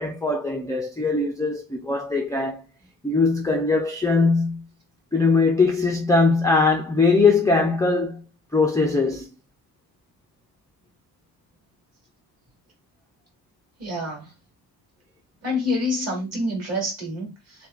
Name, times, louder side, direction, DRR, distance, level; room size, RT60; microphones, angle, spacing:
voice 1, 0.0-2.6 3.0-4.6 5.1-8.2 8.5-9.3, left 3 dB, 10° left, 0.5 m, -21 dB
voice 2, 13.8-14.3 15.4-17.7, left 1 dB, 40° right, 2.6 m, -27 dB
6.7 x 2.3 x 2.4 m
cardioid pair, 155°, 39 cm